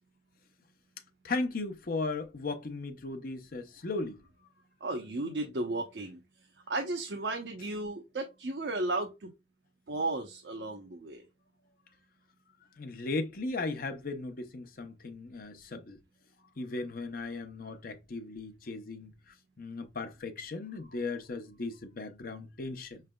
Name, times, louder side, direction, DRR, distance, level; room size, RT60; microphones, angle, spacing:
voice 1, 1.2-4.2 12.8-16.0 16.6-23.0, left 3 dB, 55° left, 0.7 m, -37 dB
voice 2, 4.8-6.2 6.7-9.3 9.9-11.2, right 2 dB, 75° right, 0.7 m, -34 dB
4.9 x 3.3 x 2.2 m
head